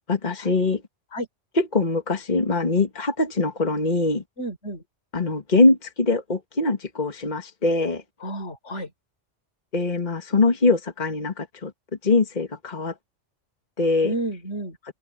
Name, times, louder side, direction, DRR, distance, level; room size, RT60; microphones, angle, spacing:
voice 1, 0.1-0.8 1.6-4.2 5.1-8.0 9.7-11.7 12.0-12.9 13.8-14.1, left 3 dB, 35° left, 1.9 m, -22 dB
voice 2, 4.4-4.8 8.2-8.9 14.0-14.8, right 1 dB, 70° left, 4.1 m, -31 dB
open air
omnidirectional pair, 1.3 m